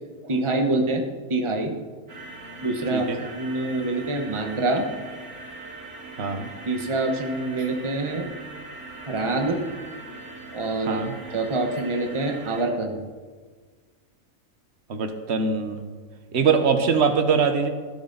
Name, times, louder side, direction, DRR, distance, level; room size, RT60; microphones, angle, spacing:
voice 1, 0.2-1.0 1.3-1.7 2.6-4.9 6.7-8.3 9.1-9.6 10.5-11.0 11.3-13.0, right 2 dB, 20° right, 3 dB, 1.2 m, -25 dB
sound 1, 2.1-12.6, right 3 dB, 85° right, 2.5 m, -41 dB
voice 2, 6.2-6.5 10.9-11.2 14.9-15.8 16.3-17.7, right 5 dB, 50° right, 7 dB, 1.3 m, -22 dB
17.0 x 12.0 x 4.0 m, 1.5 s
omnidirectional pair, 1.5 m